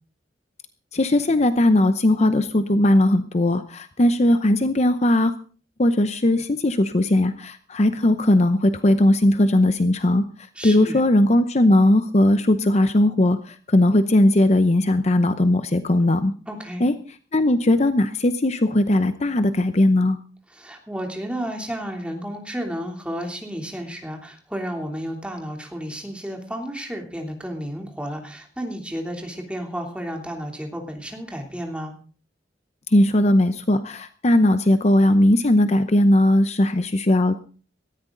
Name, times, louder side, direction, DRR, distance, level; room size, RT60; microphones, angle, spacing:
voice 1, 0.9-5.3 5.8-16.3 16.8-16.9 17.3-20.2 32.9-37.4, left 1 dB, 40° left, 10 dB, 0.8 m, -18 dB
voice 2, 10.5-11.0 16.5-16.9 20.5-31.9, equal, 5° right, 2 dB, 3.1 m, -32 dB
18.5 x 14.0 x 3.9 m, 0.39 s
head